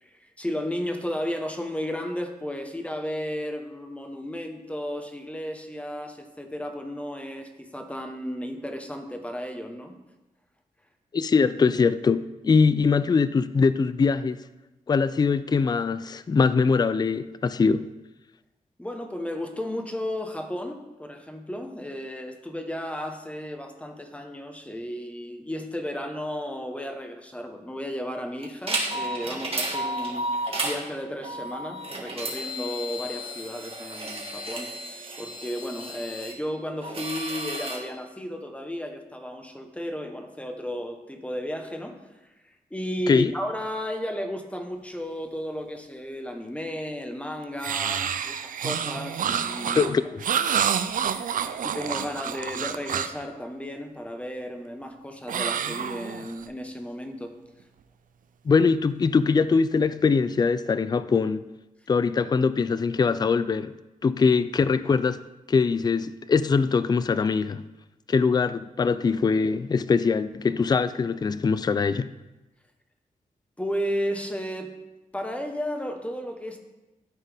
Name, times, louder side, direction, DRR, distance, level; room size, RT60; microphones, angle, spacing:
voice 1, 0.0-9.9 18.8-30.3 30.6-42.0 42.7-49.9 51.6-57.3 73.6-74.7 75.1-76.6, equal, 10° left, 1.1 m, -33 dB
voice 2, 11.1-14.4 14.9-17.9 43.1-43.3 49.8-50.0 58.5-61.4 61.9-63.7 64.0-65.2 65.5-67.6 68.1-72.1, left 5 dB, 30° left, 0.3 m, -22 dB
sound 1, 28.4-30.8 31.2-36.3 36.8-37.8, right 1 dB, 40° right, 1.7 m, -32 dB
sound 2, 47.6-53.2 55.3-56.5, right 8 dB, 70° right, 0.4 m, -28 dB
12.5 x 4.4 x 3.5 m
cardioid pair, 65°, 15 cm